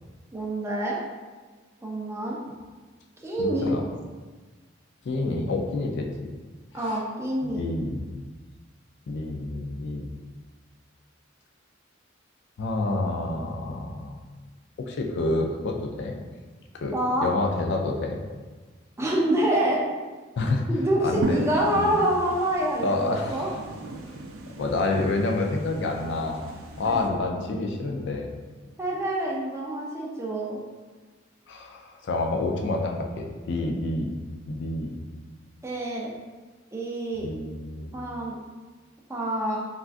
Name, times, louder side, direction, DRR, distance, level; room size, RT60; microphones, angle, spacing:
voice 1, 0.3-1.0 1.8-2.4 3.2-3.7 6.7-7.6 16.9-17.3 19.0-19.8 20.7-23.5 26.8-27.0 28.8-30.6 35.6-36.1 36.7-37.3 37.9-38.4 39.1-39.6, right 1 dB, 15° right, -3 dB, 0.4 m, -26 dB
voice 2, 3.4-3.8 5.0-6.3 6.9-7.0 7.4-8.2 9.1-10.1 12.6-14.2 14.8-16.2 16.8-16.9 17.2-18.2 20.4-20.6 21.0-21.4 21.7-22.0 22.8-23.4 24.6-28.3 31.5-34.1 34.5-34.9 37.2-37.9, left 2 dB, 60° left, 2 dB, 0.3 m, -28 dB
sound 1, 21.2-27.1, right 2 dB, 90° right, 0.4 m, -37 dB
3.4 x 2.4 x 2.4 m, 1.4 s
head